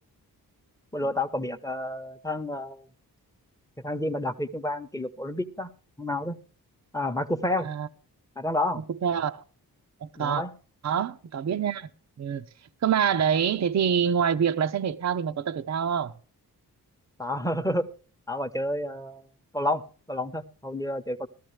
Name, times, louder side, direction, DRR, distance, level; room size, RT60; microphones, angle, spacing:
voice 1, 0.9-2.8 3.8-5.7 6.0-6.4 6.9-7.7 8.4-8.8 10.2-10.5 17.2-17.9 18.3-19.2 19.5-19.8 20.1-21.3, left 1 dB, 10° left, 0.9 m, -29 dB
voice 2, 8.8-9.4 10.0-10.4 10.8-11.9 12.2-12.4 12.8-16.1, right 8 dB, 45° right, 0.6 m, -26 dB
14.5 x 13.5 x 3.3 m
cardioid pair, 75°, 38 cm